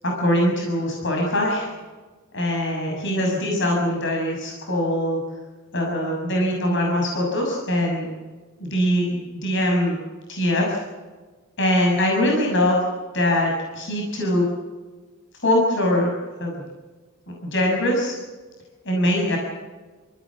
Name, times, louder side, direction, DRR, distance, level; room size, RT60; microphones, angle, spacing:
voice 1, 0.0-1.7 2.3-5.2 5.7-8.1 8.6-10.0 10.3-10.8 11.6-12.8 13.1-14.5 15.4-16.1 16.4-16.5 17.3-18.1 18.8-19.4, left 1 dB, 55° left, 0 dB, 6.5 m, -22 dB
29.5 x 15.5 x 7.4 m, 1.3 s
head